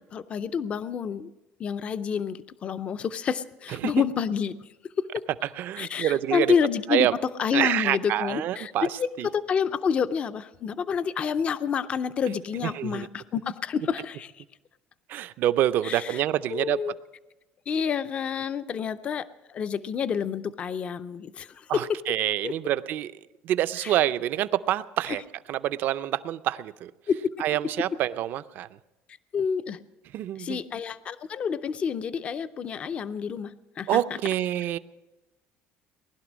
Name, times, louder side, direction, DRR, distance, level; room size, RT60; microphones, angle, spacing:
voice 1, 0.1-1.3 1.6-4.5 5.0-5.2 5.8-7.1 7.4-14.4 15.8-16.2 16.5-16.9 17.7-21.8 22.4-22.5 23.8-23.9 27.1-27.2 29.3-29.8 30.4-34.0, left 7 dB, 25° left, 13 dB, 0.4 m, -28 dB
voice 2, 5.6-6.5 6.9-7.1 7.5-8.9 9.2-9.3 12.6-13.1 15.1-16.8 21.7-23.1 23.4-25.2 25.5-26.9 27.4-28.7 30.1-30.6 33.9-34.8, right 12 dB, 45° right, 14 dB, 0.5 m, -26 dB
19.5 x 12.0 x 6.2 m, 1.0 s
cardioid pair, 180°, 4 cm